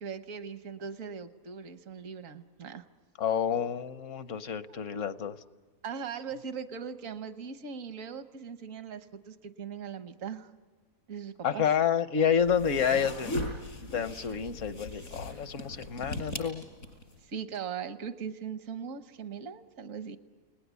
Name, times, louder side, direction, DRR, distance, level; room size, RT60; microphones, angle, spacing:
voice 1, 0.0-2.8 4.7-4.8 5.8-10.5 11.1-11.7 14.0-14.3 15.0-15.1 17.2-20.2, right 6 dB, 75° right, 10 dB, 1.4 m, -40 dB
voice 2, 3.2-5.4 11.4-13.4 13.9-16.6, left 7 dB, 70° left, 12 dB, 1.3 m, -29 dB
sound 1, 12.4-17.2, left 1 dB, 85° left, 4.8 m, -38 dB
29.0 x 19.5 x 8.2 m, 1.4 s
omnidirectional pair, 1.4 m